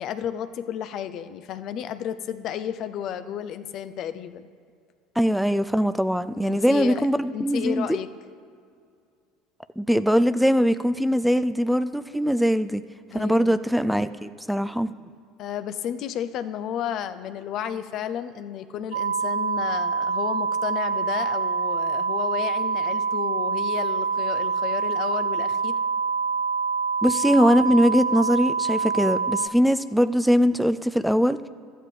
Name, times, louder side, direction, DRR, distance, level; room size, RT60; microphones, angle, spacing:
voice 1, 0.0-4.5 6.4-7.1 7.3-8.1 13.1-13.7 15.4-25.8, left 9 dB, 55° left, 11 dB, 0.5 m, -32 dB
voice 2, 5.2-7.9 9.8-12.8 13.1-14.9 27.0-31.5, equal, ahead, 12 dB, 0.3 m, -21 dB
sound 1, 18.9-29.5, right 5 dB, 90° right, 0.5 m, -26 dB
13.0 x 9.8 x 3.3 m, 2.3 s
hypercardioid pair, 80°, 0 cm